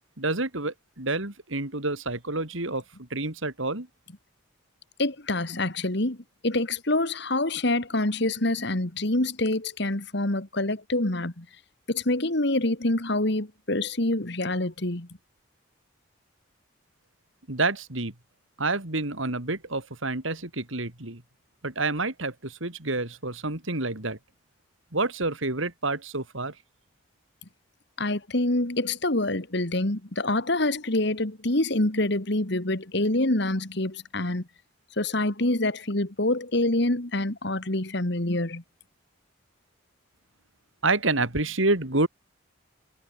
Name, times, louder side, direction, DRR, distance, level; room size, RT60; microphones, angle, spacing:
voice 1, 0.2-3.9 17.5-18.1 18.6-21.2 21.6-24.2 24.9-26.5 40.8-42.1, right 2 dB, 70° right, 3.2 m, -28 dB
voice 2, 5.0-6.2 6.4-11.5 11.9-15.1 28.0-34.4 35.0-38.6, left 2 dB, 55° left, 2.1 m, -26 dB
head